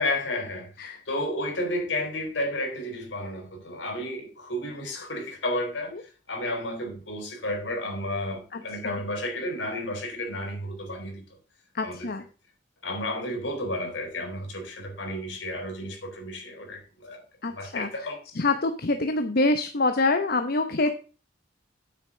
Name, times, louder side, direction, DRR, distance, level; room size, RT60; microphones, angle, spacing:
voice 1, 0.0-0.7 1.1-5.9 6.3-11.2 11.8-12.1 12.8-17.2 17.5-18.2, left 1 dB, 75° left, 4.2 m, -32 dB
voice 2, 8.5-9.0 11.7-12.2 17.4-17.9 18.3-20.9, left 2 dB, 55° left, 0.9 m, -26 dB
9.6 x 8.5 x 3.9 m
head